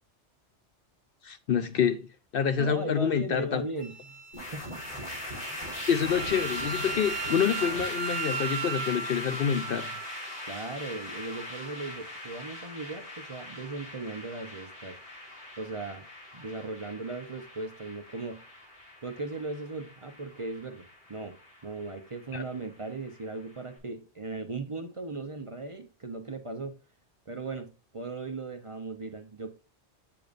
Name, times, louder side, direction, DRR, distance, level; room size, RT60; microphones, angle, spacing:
voice 1, 1.2-2.1 2.3-3.6 5.9-9.9 22.3-22.4, left 8 dB, 60° left, 0.7 m, -27 dB
voice 2, 2.6-4.1 4.5-5.0 5.5-5.8 10.5-15.0 15.6-16.1 16.3-18.4 19.0-21.4 21.6-26.7 27.3-29.5, right 3 dB, 35° right, 0.7 m, -38 dB
Wind instrument woodwind instrument, 3.8-12.0, right 5 dB, 85° right, 1.2 m, -38 dB
sound 1, 4.3-23.6, left 1 dB, 45° left, 2.6 m, -41 dB
sound 2, 6.0-8.1, left 2 dB, 75° left, 1.9 m, -51 dB
7.8 x 7.0 x 2.5 m
omnidirectional pair, 1.2 m